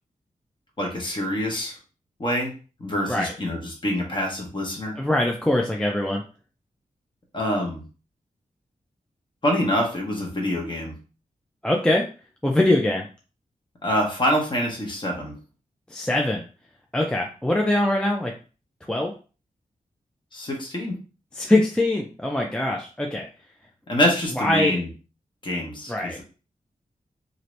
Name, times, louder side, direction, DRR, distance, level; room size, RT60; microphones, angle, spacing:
voice 1, 0.8-1.8 2.2-2.5 2.8-5.0 7.3-7.8 9.4-11.0 13.8-15.4 20.3-21.0 23.9-24.9 25.4-26.2, equal, 35° left, 0 dB, 1.0 m, -25 dB
voice 2, 5.0-6.2 11.6-12.0 12.4-13.1 15.9-16.4 16.9-18.3 18.9-19.1 21.3-23.2 24.4-24.8 25.9-26.2, left 1 dB, 5° left, 0 dB, 0.3 m, -22 dB
2.7 x 2.5 x 3.1 m, 0.36 s
wide cardioid pair, 155°, 14 cm